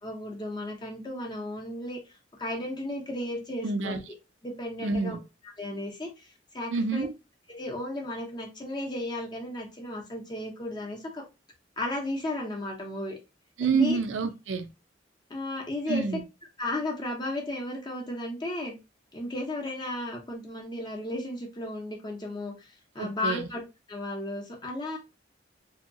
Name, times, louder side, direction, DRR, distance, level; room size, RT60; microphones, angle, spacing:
voice 1, 0.0-2.1 2.4-4.0 4.4-5.2 5.6-7.1 7.5-11.2 11.8-13.2 13.6-14.0 15.3-16.0 16.6-18.8 19.1-23.6 23.9-25.0, left 1 dB, 25° left, 0.6 m, -34 dB
voice 2, 3.6-4.0 4.8-5.2 6.7-7.1 13.6-14.7 15.9-16.2 23.0-23.5, right 5 dB, 80° right, 0.4 m, -28 dB
2.7 x 2.2 x 2.6 m
head